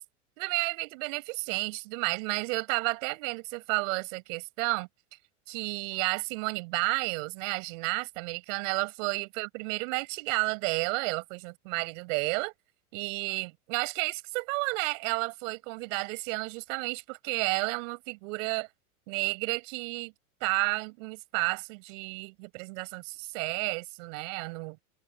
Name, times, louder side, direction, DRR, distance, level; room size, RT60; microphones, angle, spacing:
voice 1, 0.4-4.9 5.5-12.5 12.9-18.7 19.1-20.1 20.4-24.8, right 27 dB, 60° right, 6.4 m, -32 dB
supercardioid pair, 135°, 44 cm